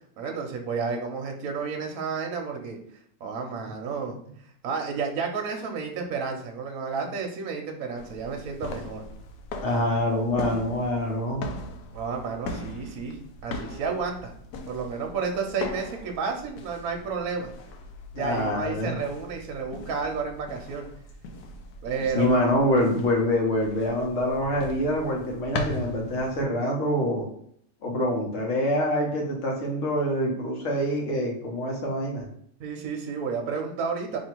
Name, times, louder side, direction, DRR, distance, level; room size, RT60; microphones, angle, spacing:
voice 1, 0.2-2.8 3.2-4.2 4.6-9.0 11.9-14.3 14.7-17.5 18.1-20.9 21.8-22.5 32.6-34.2, right 5 dB, 65° right, 2 dB, 1.1 m, -31 dB
sound 1, 8.0-26.5, left 2 dB, 75° left, 1.1 m, -39 dB
voice 2, 9.6-11.5 18.1-19.0 22.1-27.3 27.8-32.3, left 1 dB, 50° left, 0 dB, 1.2 m, -25 dB
3.0 x 2.7 x 4.4 m, 0.68 s
omnidirectional pair, 1.8 m